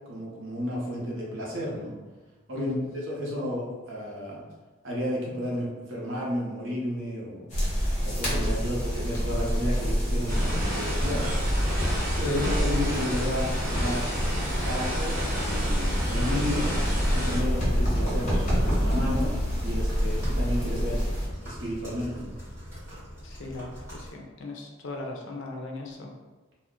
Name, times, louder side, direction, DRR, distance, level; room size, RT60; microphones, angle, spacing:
voice 1, 0.1-2.0 2.5-4.4 4.8-7.5 8.0-11.3 12.2-14.1 14.6-16.7 17.1-21.0 21.4-22.3, left 1 dB, 65° right, -4 dB, 0.8 m, -32 dB
sound 1, 7.5-21.3, equal, 35° left, 0.9 m, -27 dB
sound 2, 10.3-17.4, equal, 40° right, 0.9 m, -30 dB
sound 3, 15.7-24.1, equal, 10° right, 1.5 m, -43 dB
voice 2, 23.2-26.1, left 2 dB, 60° left, 1 dB, 0.5 m, -38 dB
2.4 x 2.1 x 3.6 m, 1.2 s
head